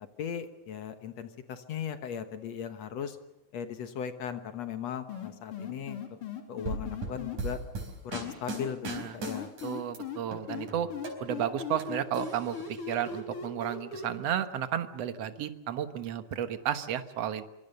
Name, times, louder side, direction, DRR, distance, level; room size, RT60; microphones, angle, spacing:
voice 1, 0.2-3.2 3.5-6.0 6.5-7.6 8.0-9.5, left 8 dB, 65° left, 9 dB, 2.3 m, -37 dB
sound 1, 5.1-7.4 8.1-10.2 10.5-14.1, left 6 dB, 45° left, 3.6 m, -38 dB
sound 2, 6.7-10.0 10.3-11.8 12.1-13.0, right 3 dB, 85° right, 5.8 m, -38 dB
voice 2, 8.9-9.2 9.6-10.9 11.2-17.4, right 10 dB, 60° right, 10 dB, 2.2 m, -33 dB
24.5 x 24.5 x 6.7 m, 0.95 s
omnidirectional pair, 3.5 m